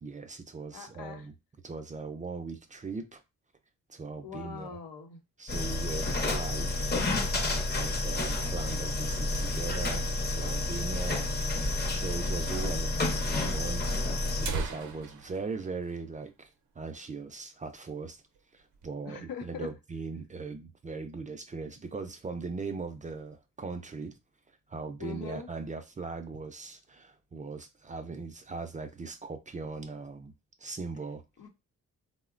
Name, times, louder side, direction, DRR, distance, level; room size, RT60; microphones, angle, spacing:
voice 1, 0.0-1.3 1.6-3.2 3.9-4.8 5.4-6.9 7.7-11.2 11.6-13.9 14.4-16.5 16.8-18.2 18.5-24.2 24.7-30.3 30.6-31.2, right 4 dB, 25° right, 0.3 m, -39 dB
voice 2, 0.7-1.3 4.2-5.2 19.1-19.7 25.0-25.5 31.4-31.5, left 6 dB, 85° left, 0.7 m, -42 dB
sound 1, 5.5-14.5, left 2 dB, 30° left, 0.6 m, -30 dB
sound 2, 12.5-12.6 12.9-13.0 13.8-13.9 14.2-16.8 17.1-17.3 17.7-17.9 18.3-18.9, right 4 dB, 60° right, 0.6 m, -40 dB
3.6 x 2.1 x 2.4 m
cardioid pair, 115°, 34 cm